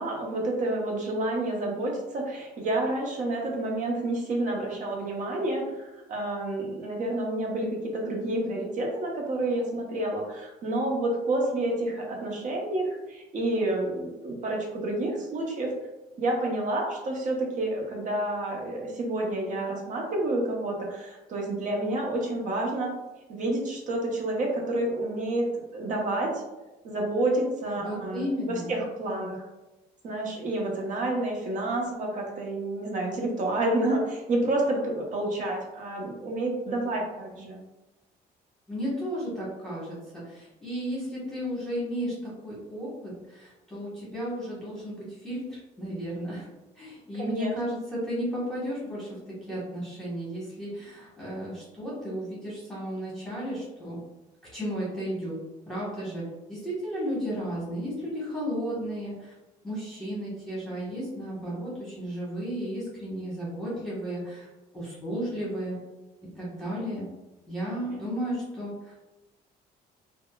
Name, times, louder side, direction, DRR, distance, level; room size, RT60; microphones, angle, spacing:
voice 1, 0.0-15.8 16.2-22.9 23.3-26.4 26.8-29.4 30.0-37.6 47.1-47.5, right 1 dB, 50° right, 0 dB, 0.8 m, -29 dB
voice 2, 27.8-28.8 38.7-46.5 46.8-49.2 49.5-54.0 54.5-55.4 55.7-59.3 59.6-64.5 64.7-65.8 66.4-67.1 67.5-69.0, equal, 5° left, -8 dB, 1.2 m, -34 dB
3.6 x 2.1 x 2.3 m, 1.0 s
cardioid pair, 110°, 17 cm